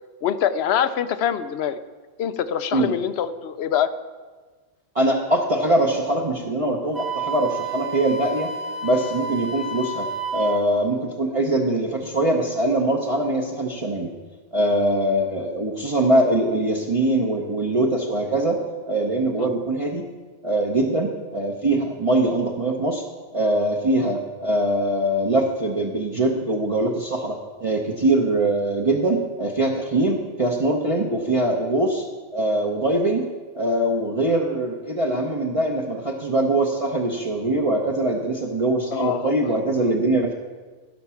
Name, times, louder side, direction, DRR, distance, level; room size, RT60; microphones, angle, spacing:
voice 1, 0.2-1.8 2.2-3.9 19.4-19.5 38.9-39.5, left 9 dB, 65° left, 12 dB, 0.8 m, -24 dB
voice 2, 4.9-8.5 8.8-10.1 10.3-14.1 14.5-20.0 20.4-23.0 23.3-32.0 32.3-33.2 33.5-40.3, right 1 dB, 30° right, -2 dB, 1.0 m, -22 dB
Wind instrument woodwind instrument, 6.9-10.7, right 3 dB, ahead, 0.7 m, -30 dB
16.0 x 6.0 x 5.8 m, 1.4 s
omnidirectional pair, 1.3 m